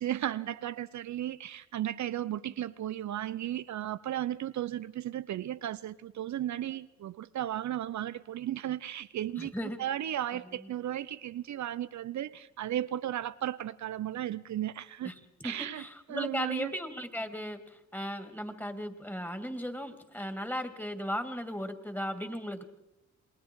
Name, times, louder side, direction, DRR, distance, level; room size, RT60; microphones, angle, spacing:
voice 1, 0.0-15.1 15.4-15.8 16.1-16.7, right 12 dB, 65° right, 0.7 m, -35 dB
voice 2, 9.4-9.8 15.0-22.6, equal, 5° left, 2.7 m, -37 dB
28.5 x 20.5 x 4.8 m
supercardioid pair, 65°, 32 cm